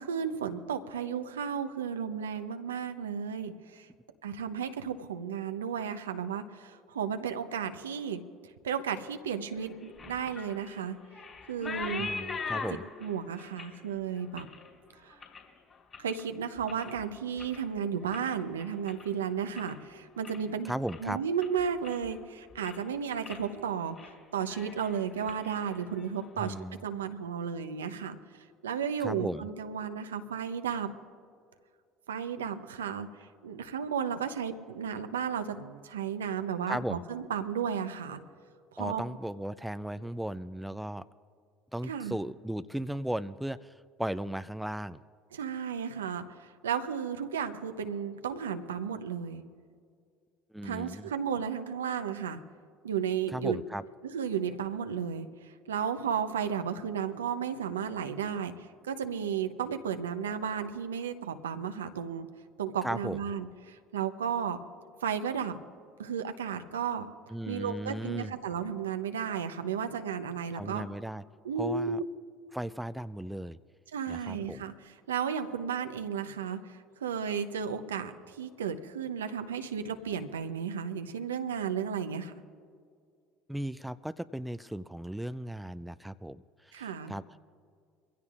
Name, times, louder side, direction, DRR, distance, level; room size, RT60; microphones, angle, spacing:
voice 1, 0.0-3.9 4.2-8.2 8.6-11.0 11.5-12.1 12.5-12.7 13.0-14.5 15.0-15.2 16.0-20.7 21.0-26.5 26.8-28.2 28.6-30.9 32.1-33.1 33.4-38.2 38.7-39.0 41.9-42.1 45.3-49.4 50.6-52.4 52.8-53.6 54.0-62.3 62.6-64.6 65.0-65.6 66.0-67.1 67.5-70.9 71.4-72.0 73.9-82.3 86.7-87.1, right 7 dB, 85° right, 8 dB, 0.7 m, -34 dB
sound 1, 9.6-16.2 16.6-17.0 17.3-19.8 20.1-20.5 20.9-21.0 21.4-22.2 22.5-22.9 23.2-23.4 23.8-24.1 24.4-26.3, left 5 dB, 35° left, 3.7 m, -42 dB
voice 2, 12.0-12.9 20.6-21.2 26.4-26.8 29.0-29.5 36.7-37.0 38.8-41.1 41.7-43.7 44.0-45.0 50.5-51.1 53.3-53.8 62.8-63.2 67.3-68.3 70.5-71.2 71.6-72.0 72.5-73.6 74.1-74.6 83.5-87.4, right 1 dB, 5° right, 14 dB, 0.4 m, -36 dB
23.5 x 16.0 x 2.5 m, 2.2 s
hypercardioid pair, 70°, 0 cm